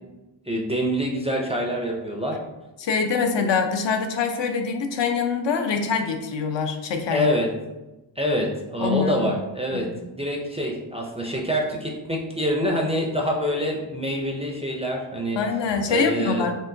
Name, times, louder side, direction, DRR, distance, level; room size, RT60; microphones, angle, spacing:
voice 1, 0.5-2.4 7.1-7.5 8.2-15.4 15.9-16.5, equal, 15° right, -1 dB, 0.4 m, -26 dB
voice 2, 2.8-7.3 8.8-9.3 9.7-10.0 15.4-16.5, left 5 dB, 70° left, 5 dB, 0.6 m, -24 dB
4.6 x 2.9 x 2.6 m, 1.1 s
wide cardioid pair, 140°, 46 cm